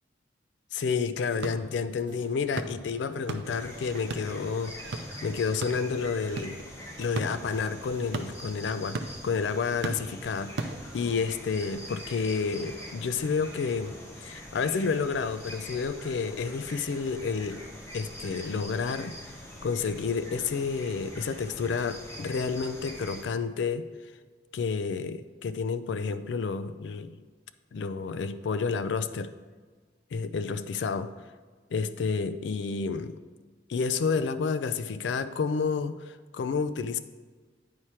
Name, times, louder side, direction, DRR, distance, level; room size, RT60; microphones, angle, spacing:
voice 1, 0.7-6.6 7.0-17.6 17.9-19.3 19.6-23.9 24.5-27.1 27.7-29.3 30.1-31.1 31.7-33.2 33.7-37.0, left 5 dB, 75° left, 11 dB, 0.4 m, -30 dB
sound 1, 1.2-11.3, right 3 dB, 70° right, 0.6 m, -40 dB
sound 2, 3.4-23.2, equal, 15° left, 1.2 m, -44 dB
9.5 x 4.3 x 4.7 m, 1.4 s
head